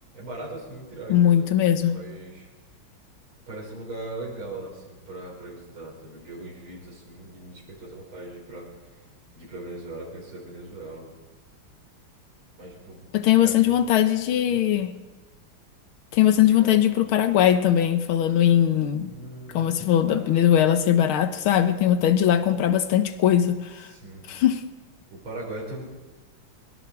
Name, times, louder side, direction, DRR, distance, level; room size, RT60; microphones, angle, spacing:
voice 1, 0.1-1.5 1.9-2.5 3.5-8.7 9.4-11.1 12.6-13.1 13.4-13.8 14.5-14.6 16.4-16.8 19.0-20.2 23.8-24.3 25.1-25.8, right 2 dB, 80° right, 5.9 m, -39 dB
voice 2, 1.1-2.0 13.1-14.9 16.1-19.1 19.5-23.9 24.3-24.6, left 10 dB, 90° left, 1.9 m, -20 dB
23.0 x 23.0 x 4.9 m
omnidirectional pair, 2.2 m